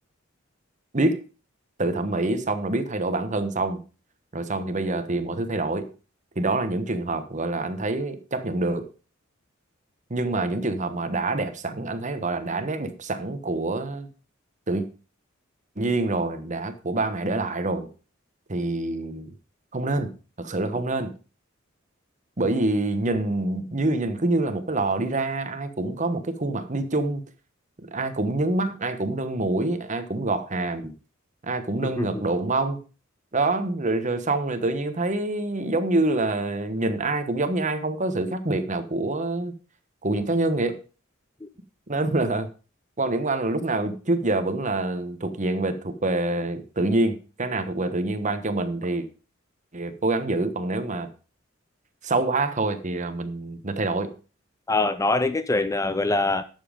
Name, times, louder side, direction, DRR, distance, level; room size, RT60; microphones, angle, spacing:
voice 1, 1.8-3.8 4.3-5.9 6.4-8.9 10.1-14.1 14.7-14.8 15.8-17.9 18.5-19.3 19.7-20.1 20.4-21.1 22.4-27.2 27.9-30.9 31.4-32.8 33.3-39.5 40.0-40.8 41.9-42.5 43.0-49.1 49.7-51.1 52.0-54.1, right 2 dB, 35° right, 1.2 m, -26 dB
voice 2, 31.8-32.2 41.4-41.5 54.7-56.4, left 2 dB, 15° left, 0.5 m, -24 dB
11.0 x 7.4 x 5.1 m
head